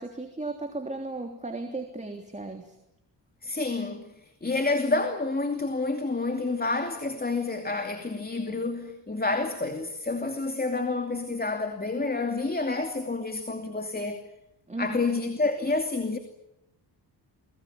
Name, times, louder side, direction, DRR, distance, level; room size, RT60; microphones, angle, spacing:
voice 1, 0.0-2.8 14.7-15.0, right 2 dB, 15° right, 3.3 m, -35 dB
voice 2, 3.4-14.2 14.8-16.2, left 3 dB, 20° left, 2.7 m, -29 dB
29.5 x 21.0 x 8.9 m
cardioid pair, 110°, 42 cm